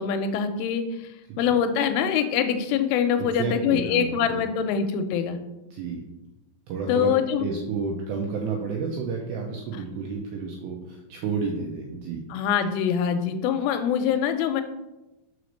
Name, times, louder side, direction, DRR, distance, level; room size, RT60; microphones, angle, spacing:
voice 1, 0.0-1.1 1.4-5.4 6.9-7.5 12.3-14.6, left 8 dB, 85° left, 8 dB, 3.0 m, -24 dB
voice 2, 3.2-4.4 5.7-6.0 6.7-7.1 7.4-12.2, right 5 dB, 85° right, 0 dB, 2.5 m, -31 dB
6.4 x 5.1 x 6.4 m, 0.99 s
omnidirectional pair, 5.9 m